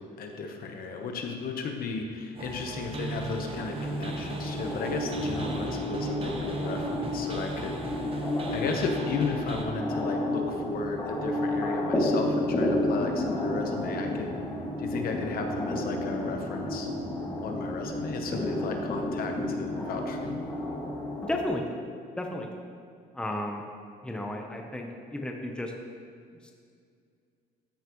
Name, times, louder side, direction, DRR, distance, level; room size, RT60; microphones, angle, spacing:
voice 1, 0.0-8.1 8.5-14.3 14.8-16.9 17.4-20.4, left 4 dB, 60° left, 3 dB, 1.0 m, -34 dB
sound 1, 2.3-9.7, right 2 dB, 35° right, 1.0 m, -37 dB
sound 2, 3.5-21.5, left 1 dB, 20° left, 2.3 m, -31 dB
voice 2, 21.2-21.6 22.2-22.5 23.1-23.6 24.0-25.7 26.4-26.5, left 1 dB, 5° left, 2 dB, 0.8 m, -33 dB
13.0 x 5.8 x 3.1 m, 2.2 s
cardioid pair, 110°, 17 cm